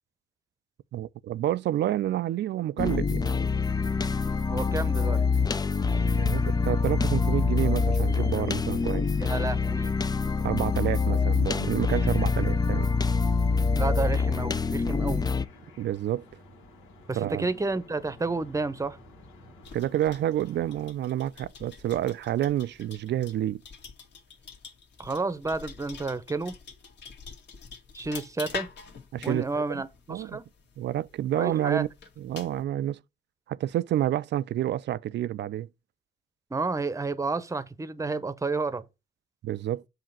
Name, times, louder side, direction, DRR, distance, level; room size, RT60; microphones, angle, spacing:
voice 1, 0.9-3.6 6.1-9.1 10.4-12.9 15.8-16.2 17.2-17.5 19.7-23.6 29.1-29.8 30.1-30.4 30.8-31.9 32.2-33.0 33.5-35.7 39.4-39.8, right 12 dB, 60° right, 0.4 m, -29 dB
sound 1, 2.8-15.5, left 4 dB, 20° left, 0.4 m, -25 dB
sound 2, 3.3-20.9, left 2 dB, 85° left, 1.9 m, -52 dB
voice 2, 4.5-5.2 9.2-10.0 13.8-15.3 17.1-19.0 25.0-26.5 27.9-28.7 29.2-30.4 31.4-31.8 36.5-38.8, right 3 dB, 15° right, 0.8 m, -30 dB
sound 3, 19.6-32.6, left 5 dB, 60° left, 1.9 m, -46 dB
7.6 x 2.9 x 5.8 m
cardioid pair, 90°, 20 cm